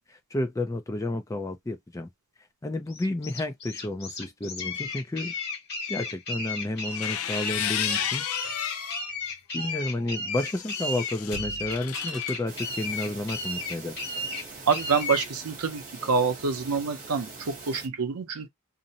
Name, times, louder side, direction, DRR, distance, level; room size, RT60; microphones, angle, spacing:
voice 1, 0.1-2.1 2.6-5.3 5.9-8.2 9.5-13.9, left 1 dB, 15° left, 0.4 m, -31 dB
sound 1, 2.9-15.3, left 3 dB, 45° left, 1.3 m, -34 dB
sound 2, 6.8-9.1 9.6-12.4, left 9 dB, 75° left, 0.5 m, -33 dB
sound 3, 12.5-17.9, right 3 dB, 35° right, 0.8 m, -43 dB
voice 2, 14.7-18.5, right 5 dB, 85° right, 0.6 m, -27 dB
2.5 x 2.0 x 2.7 m
head